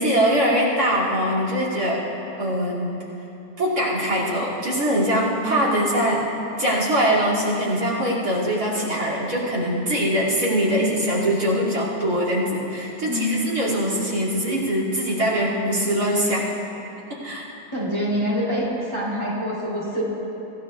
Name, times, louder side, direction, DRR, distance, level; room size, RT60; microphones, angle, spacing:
voice 1, 0.0-2.1 2.4-3.0 3.6-6.3 6.6-16.5 17.1-17.5, equal, 60° right, -5 dB, 3.2 m, -22 dB
voice 2, 13.1-13.6 17.7-18.7 18.9-20.0, equal, 15° left, -7 dB, 3.0 m, -25 dB
24.5 x 16.0 x 2.4 m, 3.0 s
omnidirectional pair, 1.8 m